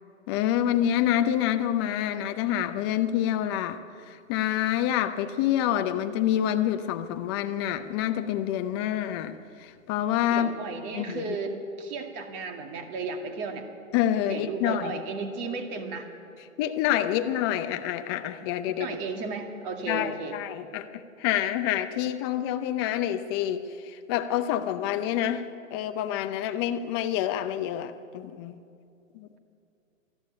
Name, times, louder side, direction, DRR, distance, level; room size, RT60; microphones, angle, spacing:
voice 1, 0.3-9.3 9.6-10.5 10.9-11.3 13.9-15.0 16.6-19.0 19.9-28.6 29.1-29.3, left 11 dB, 20° left, 9 dB, 0.6 m, -27 dB
voice 2, 10.3-13.7 14.3-16.1 18.6-20.4, right 4 dB, 25° right, 5 dB, 2.2 m, -34 dB
20.5 x 14.0 x 9.8 m, 2.6 s
hypercardioid pair, 150°, 41 cm